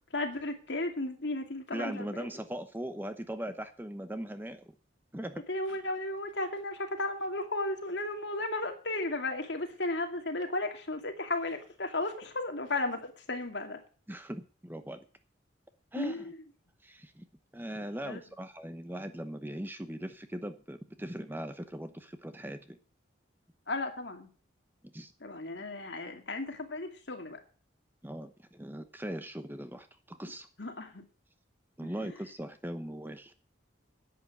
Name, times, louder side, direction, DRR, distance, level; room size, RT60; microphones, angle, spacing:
voice 1, 0.1-2.3 5.5-13.8 15.9-16.2 18.0-18.2 23.7-24.3 25.2-27.4 30.6-31.0 31.8-31.9, left 2 dB, 60° left, 4 dB, 2.4 m, -34 dB
voice 2, 1.7-4.7 5.1-5.4 14.1-15.0 15.9-16.3 16.8-17.3 17.5-22.8 24.8-25.1 28.0-30.5 31.8-33.3, right 1 dB, 10° right, 9 dB, 0.8 m, -40 dB
11.0 x 8.5 x 8.1 m, 0.40 s
head